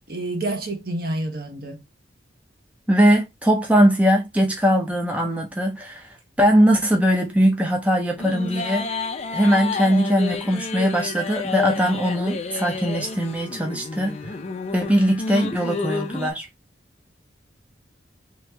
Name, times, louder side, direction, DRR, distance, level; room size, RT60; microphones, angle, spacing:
voice 1, 0.1-1.8, right 2 dB, 55° right, 0.9 m, -28 dB
voice 2, 2.9-6.0 6.4-8.9 9.3-14.2 14.7-16.5, equal, 10° right, 0.7 m, -20 dB
sound 1, 8.2-16.3, left 4 dB, 35° left, 0.5 m, -30 dB
3.0 x 3.0 x 3.3 m
head